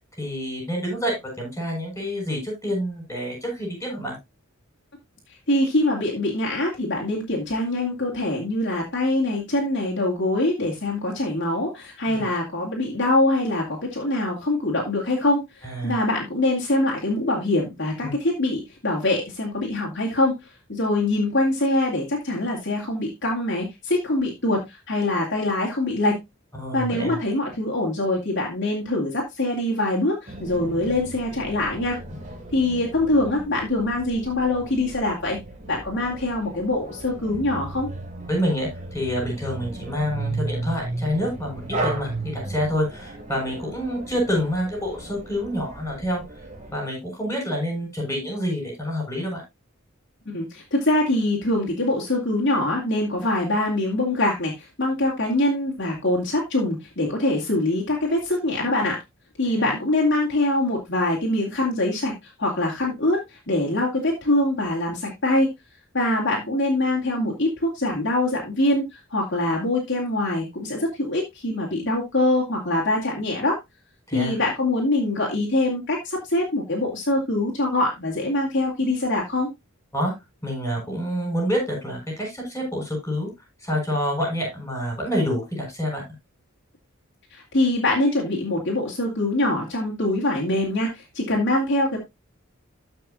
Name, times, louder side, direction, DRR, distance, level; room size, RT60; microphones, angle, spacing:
voice 1, 0.2-4.2 12.1-12.3 15.6-16.0 18.0-18.1 26.6-27.1 38.3-46.2 46.7-49.4 59.5-59.7 74.1-74.4 79.9-80.1 80.4-83.3 83.6-86.0, equal, 15° left, 1 dB, 6.9 m, -27 dB
voice 2, 5.5-20.4 20.7-26.2 26.7-32.0 32.5-35.4 35.7-37.9 50.3-59.0 59.4-65.5 65.9-73.6 74.1-79.5 87.3-92.0, left 1 dB, 55° left, -2 dB, 2.5 m, -24 dB
sound 1, 30.3-46.7, right 2 dB, 35° right, 2.2 m, -35 dB
13.5 x 6.0 x 2.7 m, 0.21 s
head